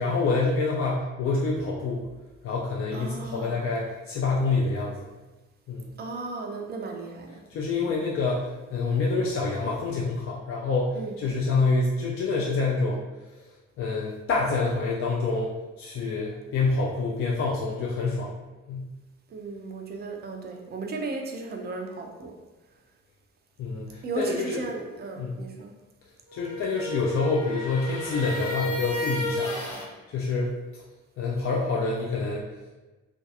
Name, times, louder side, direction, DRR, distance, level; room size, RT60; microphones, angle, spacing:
voice 1, 0.0-2.1 2.4-5.1 5.7-5.9 7.5-13.0 13.8-15.5 15.8-18.3 18.7-18.9 23.6-24.6 25.2-25.4 26.3-30.5 31.2-32.5, left 3 dB, 35° left, -4 dB, 0.4 m, -27 dB
voice 2, 2.9-3.6 6.0-7.4 7.8-8.0 11.0-11.2 19.3-22.3 24.0-25.7, right 3 dB, 25° right, 2 dB, 0.5 m, -35 dB
sound 1, 26.3-29.9, left 1 dB, 75° left, 1.1 m, -32 dB
2.5 x 2.3 x 2.5 m, 1.1 s
figure-of-eight pair, 40°, 41 cm